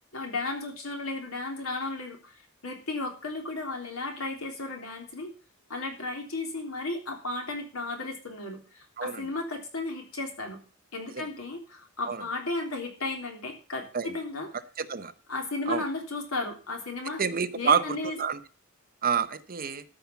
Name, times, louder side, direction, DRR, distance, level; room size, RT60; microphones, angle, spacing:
voice 1, 0.1-2.3 2.6-5.3 5.7-10.6 10.9-13.8 14.1-14.5 15.3-17.2 17.5-18.2, left 3 dB, 85° left, 2 dB, 3.4 m, -34 dB
voice 2, 14.8-15.1 15.7-15.8 17.2-18.4 19.0-19.8, right 6 dB, 45° right, 12 dB, 0.8 m, -28 dB
13.5 x 5.9 x 6.9 m, 0.37 s
head